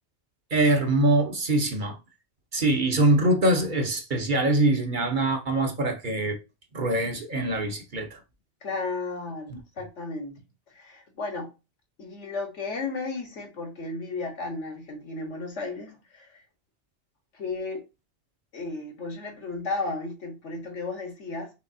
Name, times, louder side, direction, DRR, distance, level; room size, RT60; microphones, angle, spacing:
voice 1, 0.5-2.0 2.5-6.4 6.7-8.2 9.5-9.6, right 2 dB, 45° right, 1.0 m, -23 dB
voice 2, 8.6-10.4 10.7-11.5 12.0-16.4 17.4-17.8 18.5-21.5, left 3 dB, 85° left, 1.8 m, -34 dB
6.1 x 3.2 x 2.7 m
omnidirectional pair, 1.2 m